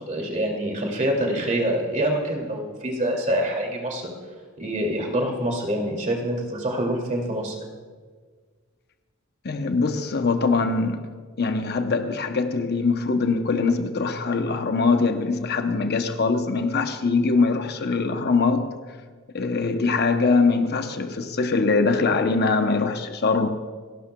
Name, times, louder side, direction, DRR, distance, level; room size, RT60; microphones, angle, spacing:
voice 1, 0.0-4.1 4.6-7.6, right 1 dB, 35° right, 2.5 m, -26 dB
voice 2, 9.4-11.1 11.4-18.7 19.3-23.5, left 4 dB, 50° left, 0.8 m, -22 dB
29.0 x 11.5 x 2.3 m
head